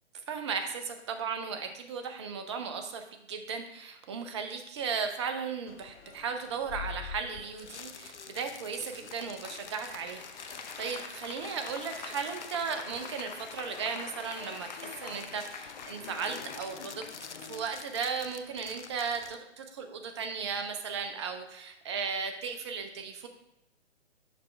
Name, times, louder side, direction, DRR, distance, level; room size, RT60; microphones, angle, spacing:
voice 1, 0.3-17.1 17.4-23.3, right 5 dB, 25° right, 6 dB, 0.6 m, -36 dB
sound 1, 5.7-19.4, left 6 dB, 85° left, 0.6 m, -47 dB
Applause / Crowd, 8.9-18.4 18.7-18.8, left 6 dB, 40° left, 0.6 m, -45 dB
6.7 x 5.1 x 3.3 m, 0.86 s
figure-of-eight pair, 130°, 34 cm